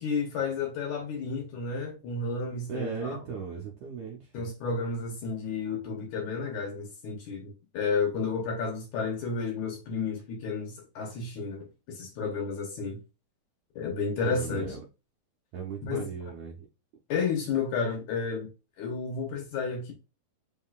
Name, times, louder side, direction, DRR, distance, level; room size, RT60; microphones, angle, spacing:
voice 1, 0.0-3.2 4.3-13.0 13.8-14.8 15.8-16.1 17.1-18.5 18.8-19.9, left 5 dB, 70° left, 2.1 m, -32 dB
voice 2, 2.7-4.3 14.2-14.8 15.5-16.7, right 5 dB, 75° right, 1.7 m, -37 dB
5.2 x 3.7 x 2.4 m
omnidirectional pair, 4.1 m